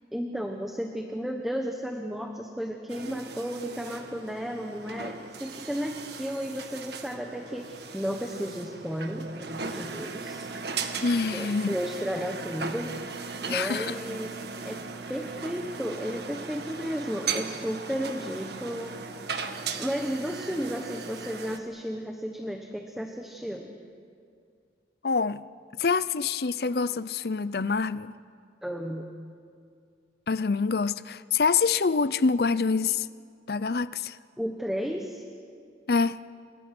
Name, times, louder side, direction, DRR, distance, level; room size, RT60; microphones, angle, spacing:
voice 1, 0.1-10.5 11.3-13.0 13.4-14.8 15.1-19.0 19.8-23.7 28.6-29.1 34.4-35.2, equal, ahead, 1.3 m, -33 dB
sound 1, 2.9-21.6, right 4 dB, 65° right, 1.6 m, -38 dB
voice 2, 11.0-11.8 13.5-13.9 25.0-25.4 25.8-28.2 30.3-33.1 33.5-34.2 35.9-36.2, left 4 dB, 60° left, 0.6 m, -26 dB
29.5 x 23.5 x 6.1 m
head